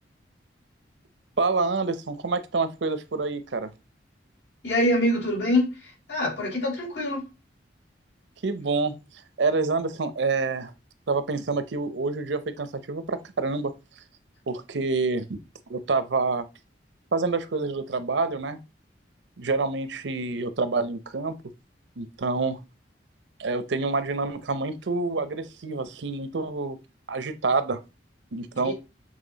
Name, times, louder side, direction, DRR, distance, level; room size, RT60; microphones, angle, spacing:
voice 1, 1.4-3.7 8.4-9.0 9.4-10.7 11.1-13.7 14.5-15.4 15.7-16.5 17.1-18.6 19.4-21.4 22.0-22.6 23.4-26.8 27.1-27.8 28.3-28.7, right 3 dB, 80° right, 0.7 m, -27 dB
voice 2, 4.6-7.2 28.6-28.7, left 1 dB, 80° left, 3.9 m, -25 dB
7.4 x 3.3 x 3.9 m
head